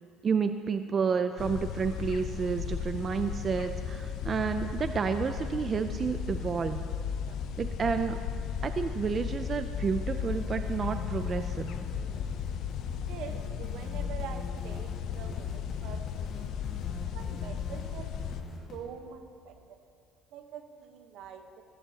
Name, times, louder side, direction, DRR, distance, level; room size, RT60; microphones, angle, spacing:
voice 1, 0.2-6.9 7.6-8.2 8.6-11.8, right 6 dB, 35° right, 8 dB, 0.4 m, -30 dB
sound 1, 1.4-18.4, left 7 dB, 65° left, 0.5 m, -35 dB
voice 2, 7.2-7.6 11.9-12.4 13.1-16.6 17.1-19.8 20.3-21.6, right 7 dB, 75° right, 6 dB, 1.1 m, -45 dB
sound 2, 10.1-18.8, left 3 dB, 40° left, 1.8 m, -45 dB
14.5 x 14.5 x 2.9 m, 2.4 s
cardioid pair, 125°, 0 cm